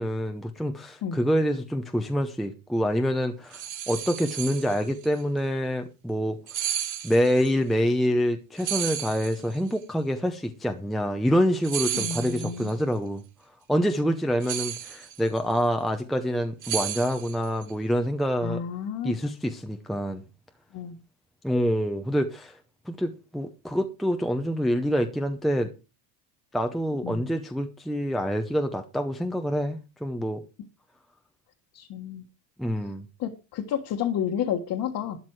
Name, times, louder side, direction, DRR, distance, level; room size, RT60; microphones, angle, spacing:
voice 1, 0.0-6.4 7.0-13.2 13.7-18.6 19.0-20.2 21.4-22.5 22.9-25.7 26.5-30.4 32.6-33.1, equal, ahead, 0.7 m, -26 dB
sound 1, 3.5-5.1 6.5-7.5 8.6-9.7 11.6-12.7 14.4-15.4 16.6-17.6, right 10 dB, 40° right, 2.5 m, -33 dB
voice 2, 11.9-12.7 18.4-19.1 20.7-21.0 27.0-27.2 31.7-32.2 33.2-35.2, left 8 dB, 45° left, 1.6 m, -30 dB
12.5 x 9.4 x 4.7 m
cardioid pair, 160°, 49 cm